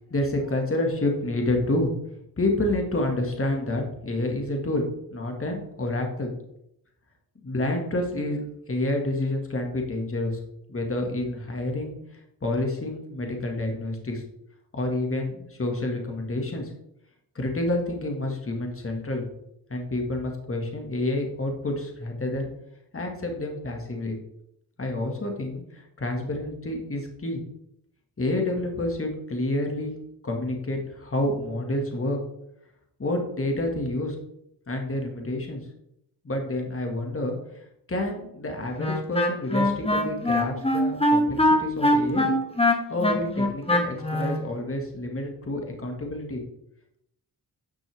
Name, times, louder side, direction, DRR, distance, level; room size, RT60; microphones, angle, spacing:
voice 1, 0.1-1.9 2.4-6.3 7.4-10.4 10.7-12.0 12.4-14.2 14.7-16.7 17.4-19.2 19.7-22.5 22.9-24.2 24.8-27.4 28.2-29.9 30.2-32.2 33.0-34.2 34.7-35.7 36.2-42.3 42.9-46.4, left 1 dB, 35° left, 2 dB, 1.9 m, -29 dB
Wind instrument woodwind instrument, 38.8-44.4, left 1 dB, 15° left, 1.4 m, -22 dB
10.0 x 6.0 x 3.5 m, 0.79 s
cardioid pair, 70°, 39 cm